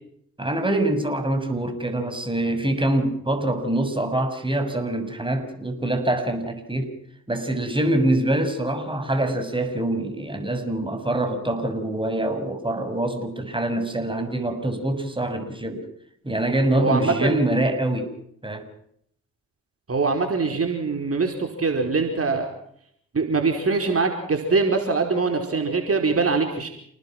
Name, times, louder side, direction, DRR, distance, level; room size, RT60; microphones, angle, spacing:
voice 1, 0.4-6.9 7.3-15.8 16.2-18.1 18.4-18.7, right 1 dB, 15° right, 6 dB, 6.9 m, -24 dB
voice 2, 16.8-17.4 19.9-22.5 23.1-26.7, right 4 dB, 45° right, 3 dB, 5.0 m, -23 dB
30.0 x 19.5 x 6.2 m, 0.70 s
hypercardioid pair, 45°, 33 cm